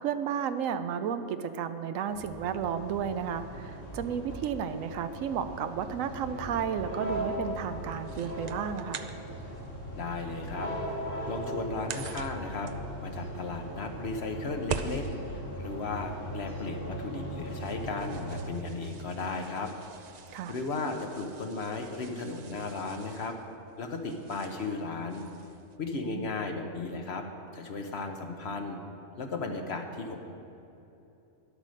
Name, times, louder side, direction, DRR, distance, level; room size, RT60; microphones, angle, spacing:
voice 1, 0.0-9.0 20.3-20.6 25.9-26.3, right 8 dB, 85° right, 10 dB, 1.0 m, -33 dB
sound 1, 2.1-18.4, right 1 dB, 70° left, 3.1 m, -39 dB
sound 2, 5.9-25.8, right 5 dB, 60° right, 0.4 m, -45 dB
voice 2, 10.0-10.7 11.0-12.7 13.0-19.7 20.5-23.3 23.8-25.2 25.8-27.2 27.5-28.8 29.2-30.3, left 3 dB, 55° left, 4 dB, 1.1 m, -35 dB
10.5 x 8.3 x 6.4 m, 2.9 s
omnidirectional pair, 1.3 m